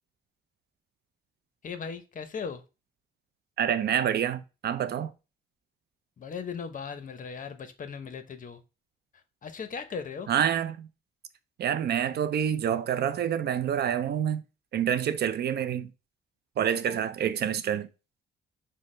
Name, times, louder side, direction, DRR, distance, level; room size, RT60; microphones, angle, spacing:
voice 1, 1.6-2.6 6.2-8.6 9.4-10.3, left 6 dB, 40° left, 0.7 m, -37 dB
voice 2, 3.6-5.1 10.3-10.9 11.6-14.4 14.7-15.9 16.6-17.9, right 9 dB, 55° right, 0.4 m, -27 dB
6.2 x 2.1 x 3.1 m
cardioid pair, 90°, 20 cm